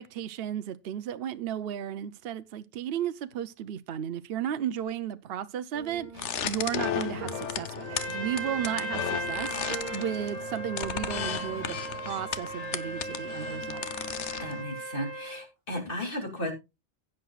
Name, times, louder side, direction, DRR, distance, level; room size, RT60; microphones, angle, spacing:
voice 1, 0.0-11.8 12.1-13.9, right 10 dB, 65° right, 0.9 m, -34 dB
sound 1, 5.7-14.1, right 5 dB, 40° right, 2.7 m, -47 dB
sound 2, 6.1-14.6, left 8 dB, 85° left, 1.1 m, -35 dB
Trumpet, 7.8-15.5, right 2 dB, 10° left, 3.8 m, -37 dB
voice 2, 14.4-16.5, equal, 50° left, 3.3 m, -34 dB
16.0 x 8.8 x 2.4 m
omnidirectional pair, 1.2 m